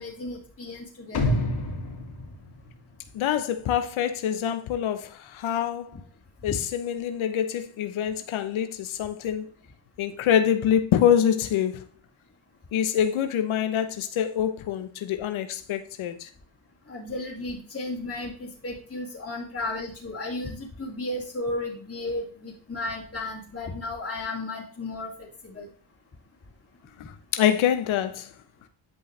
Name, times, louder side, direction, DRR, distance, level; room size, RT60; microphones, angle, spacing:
voice 1, 0.0-1.4 6.5-6.6 16.9-25.7, left 2 dB, 25° left, 2.5 m, -34 dB
sound 1, 1.1-3.3 3.7-3.8, left 1 dB, 55° left, 2.7 m, -29 dB
voice 2, 3.1-6.0 6.4-9.4 10.0-11.8 12.7-16.3 27.3-28.3, left 9 dB, 85° left, 0.9 m, -25 dB
10.5 x 5.4 x 3.3 m
cardioid pair, 85°, 47 cm